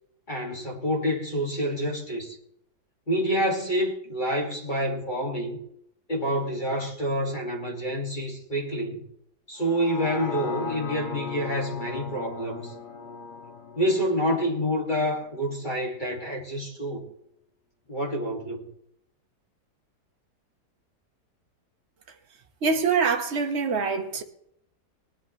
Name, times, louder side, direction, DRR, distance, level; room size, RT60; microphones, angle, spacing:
voice 1, 0.3-2.4 3.1-5.6 6.1-9.0 9.5-12.7 13.7-17.1 17.9-18.7, equal, 30° left, 2.3 m, -28 dB
sound 1, 9.6-15.7 16.2-16.3, left 4 dB, 80° left, 1.7 m, -38 dB
voice 2, 22.6-24.2, right 5 dB, 45° right, 1.3 m, -24 dB
20.0 x 11.0 x 3.2 m
omnidirectional pair, 1.7 m